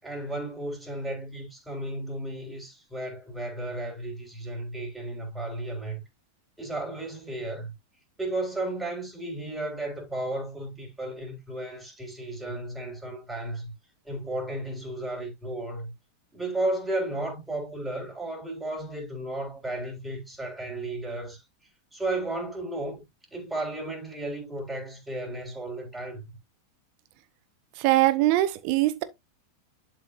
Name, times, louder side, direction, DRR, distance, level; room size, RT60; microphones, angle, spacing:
voice 1, 0.0-6.0 6.6-7.7 8.2-13.7 14.1-15.9 16.3-21.4 21.9-23.0 23.3-26.2, right 1 dB, 5° right, 3.7 m, -34 dB
voice 2, 27.8-29.0, right 16 dB, 45° right, 1.0 m, -22 dB
11.5 x 4.7 x 2.5 m
figure-of-eight pair, 90°, 0 cm